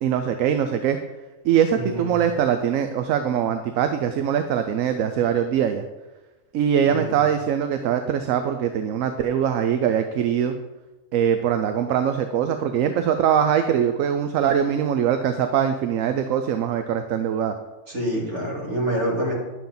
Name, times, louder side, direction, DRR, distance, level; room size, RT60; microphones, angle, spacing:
voice 1, 0.0-1.0 1.4-5.9 6.5-10.5 11.1-17.6, right 8 dB, 80° right, 8 dB, 1.0 m, -22 dB
voice 2, 1.7-2.1 6.8-7.2 17.9-19.3, right 1 dB, 60° right, -3 dB, 2.6 m, -26 dB
10.5 x 7.0 x 3.9 m, 1.2 s
omnidirectional pair, 1.4 m